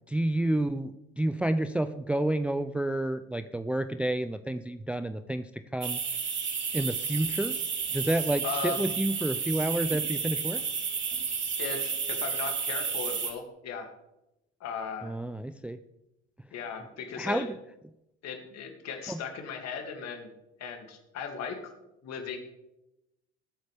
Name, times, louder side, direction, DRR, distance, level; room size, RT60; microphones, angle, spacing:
voice 1, 0.1-6.0 6.7-7.6 7.9-10.6 15.0-15.8 17.2-17.5 19.1-19.2, right 1 dB, 5° right, 11 dB, 0.5 m, -30 dB
sound 1, 5.8-13.3, right 6 dB, 35° right, 2.3 m, -32 dB
voice 2, 8.4-9.0 11.6-13.9 14.6-15.1 16.5-17.5 18.2-20.3 20.6-21.6 22.0-22.4, left 5 dB, 50° left, 4 dB, 2.7 m, -37 dB
20.5 x 9.0 x 3.5 m, 0.90 s
hypercardioid pair, 65°, 33 cm